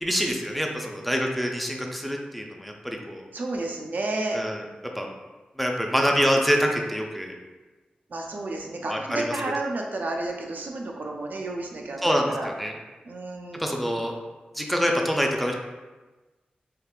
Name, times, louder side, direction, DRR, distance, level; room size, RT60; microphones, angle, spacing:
voice 1, 0.0-3.2 4.3-4.6 5.0-5.1 5.6-7.3 8.9-9.2 12.0-12.7 13.5-14.1 14.5-15.5, equal, ahead, 1 dB, 0.4 m, -25 dB
voice 2, 3.3-4.4 8.1-12.5 13.0-14.0, right 2 dB, 70° right, 1 dB, 0.4 m, -31 dB
3.5 x 2.4 x 2.3 m, 1.2 s
cardioid pair, 60°, 3 cm